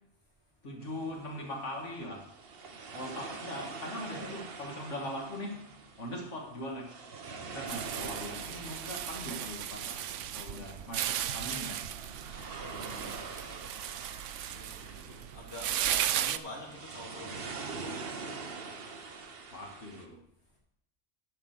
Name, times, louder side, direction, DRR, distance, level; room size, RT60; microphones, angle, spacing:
voice 1, 0.6-2.3 2.9-5.6 6.0-7.0 7.4-11.9 14.8-15.3 19.5-20.2, left 1 dB, 85° left, 0 dB, 2.3 m, -41 dB
sound 1, 0.8-20.1, right 4 dB, 55° right, 1.2 m, -45 dB
sound 2, 7.7-16.4, right 11 dB, 85° right, 0.9 m, -36 dB
voice 2, 12.6-13.2 14.5-14.9 15.3-18.5, left 1 dB, 65° left, -2 dB, 3.1 m, -47 dB
11.0 x 5.9 x 6.6 m, 0.78 s
omnidirectional pair, 1.2 m